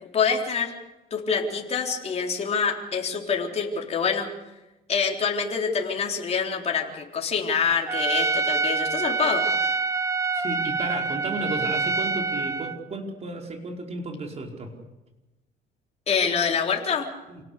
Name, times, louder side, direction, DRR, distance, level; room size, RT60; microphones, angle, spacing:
voice 1, 0.1-0.7 1.1-4.3 4.9-9.4 16.1-17.1, left 6 dB, 40° left, 1 dB, 3.8 m, -26 dB
Trumpet, 7.9-12.8, right 4 dB, 20° right, 1.1 m, -26 dB
voice 2, 10.3-14.7 17.3-17.4, right 2 dB, 40° right, 2 dB, 4.8 m, -33 dB
27.5 x 18.0 x 6.8 m, 1.0 s
cardioid pair, 110°, 17 cm